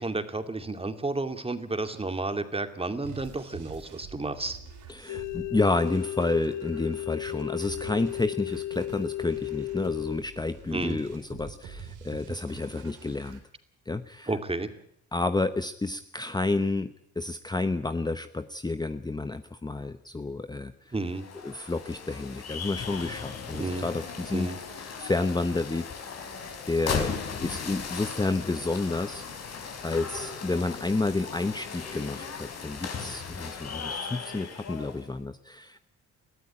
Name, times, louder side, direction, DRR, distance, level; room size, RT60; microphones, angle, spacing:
voice 1, 0.0-4.6 10.7-11.0 14.3-14.7 20.9-21.3 23.5-23.9 24.3-24.6, right 2 dB, 20° right, 8 dB, 2.4 m, -31 dB
sound 1, 3.0-13.4, right 6 dB, 85° right, 4.2 m, -47 dB
voice 2, 4.9-13.4 13.9-14.3 15.1-16.9 17.2-20.9 21.4-24.5 25.0-25.9 26.7-27.1 27.4-29.5 29.8-35.8, left 3 dB, 15° left, 10 dB, 0.9 m, -30 dB
sound 2, 5.1-10.2, left 15 dB, 80° left, 1.1 m, -34 dB
sound 3, 21.0-35.1, left 5 dB, 55° left, 4.6 m, -37 dB
21.5 x 14.0 x 9.9 m, 0.71 s
cardioid pair, 90°, 30 cm